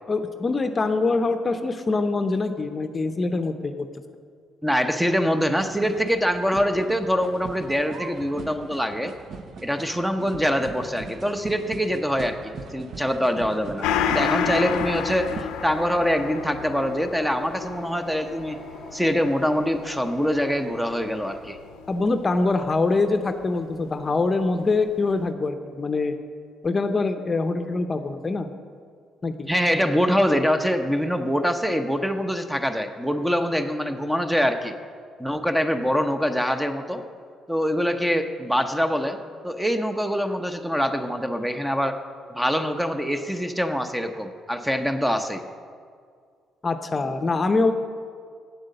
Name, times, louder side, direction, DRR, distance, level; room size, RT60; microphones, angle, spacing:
voice 1, 0.1-3.9 21.9-26.1 26.6-28.5 29.2-29.5 46.6-47.7, left 3 dB, 35° left, 8 dB, 0.7 m, -24 dB
voice 2, 4.6-9.1 9.6-13.9 14.1-18.6 18.9-21.6 29.5-34.7 35.2-37.0 37.5-39.2 39.4-42.0 42.3-45.4, equal, 5° right, 7 dB, 0.8 m, -24 dB
sound 1, 5.6-15.4, right 5 dB, 60° right, 0.6 m, -40 dB
Gong, 13.8-22.8 23.1-23.2, left 7 dB, 85° left, 0.6 m, -31 dB
sound 2, 13.8-21.4, right 1 dB, 45° right, 1.8 m, -45 dB
8.3 x 7.7 x 6.6 m, 2.1 s
supercardioid pair, 65°, 0 cm